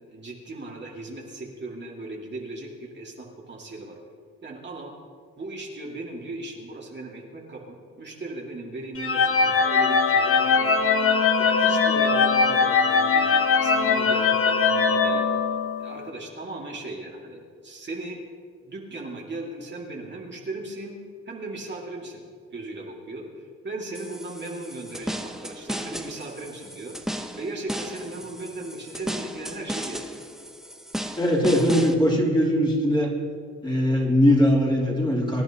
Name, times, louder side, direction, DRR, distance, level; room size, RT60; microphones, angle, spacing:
voice 1, 0.1-4.0 4.4-4.9 5.4-10.8 11.4-15.3 15.8-18.2 18.6-21.0 21.3-22.2 22.5-30.2, right 2 dB, 35° right, -2 dB, 2.2 m, -37 dB
sound 1, 9.0-16.0, left 5 dB, 45° left, 1.3 m, -21 dB
sound 2, 23.9-31.9, equal, ahead, 0.9 m, -35 dB
voice 2, 31.2-33.1 33.6-35.4, equal, 15° left, -3 dB, 3.1 m, -20 dB
24.5 x 10.5 x 2.9 m, 2.1 s
cardioid pair, 90°, 30 cm